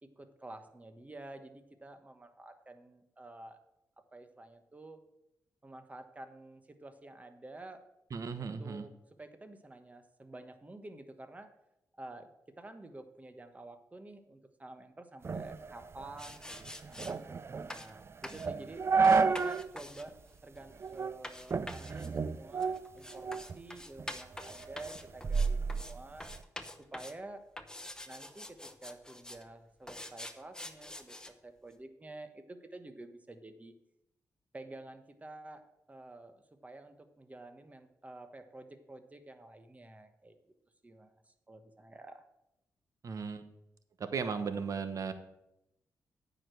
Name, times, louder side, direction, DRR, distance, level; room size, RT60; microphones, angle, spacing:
voice 1, 0.0-3.6 4.0-5.0 5.6-7.8 8.4-8.9 9.2-11.5 12.0-12.3 12.5-17.1 17.7-18.9 19.3-26.3 26.9-27.4 28.1-33.7 34.5-40.4 40.8-42.3, right 2 dB, 25° right, 8 dB, 1.2 m, -50 dB
voice 2, 8.1-8.9 43.0-43.4 44.0-45.1, right 5 dB, 60° right, 10 dB, 1.1 m, -36 dB
sound 1, 15.2-19.7 20.1-20.2 20.8-21.2 21.5-23.6 24.0-26.4, right 5 dB, 40° right, 0.4 m, -32 dB
sound 2, 16.2-17.1 17.7-17.9 18.2-18.5 19.0-25.9 26.2-27.2 27.6-29.4 29.9-31.3, left 1 dB, 10° left, 0.9 m, -46 dB
9.3 x 5.0 x 7.8 m, 0.85 s
cardioid pair, 65°, 6 cm